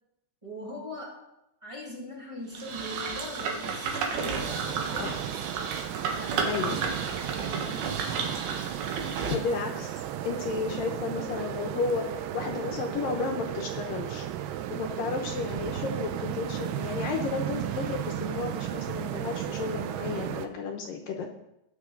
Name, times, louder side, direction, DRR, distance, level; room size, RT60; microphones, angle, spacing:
voice 1, 0.4-1.2 1.6-5.5 6.1-6.6 7.0-8.3, equal, 20° right, -3 dB, 0.9 m, -41 dB
sound 1, 2.5-9.3, right 5 dB, 70° right, 3.2 m, -32 dB
sound 2, 4.4-20.5, right 11 dB, 85° right, 2.8 m, -34 dB
voice 2, 6.5-6.8 9.3-14.3 14.7-21.3, left 5 dB, 70° left, 3 dB, 2.3 m, -33 dB
21.0 x 7.1 x 3.9 m, 0.85 s
omnidirectional pair, 4.7 m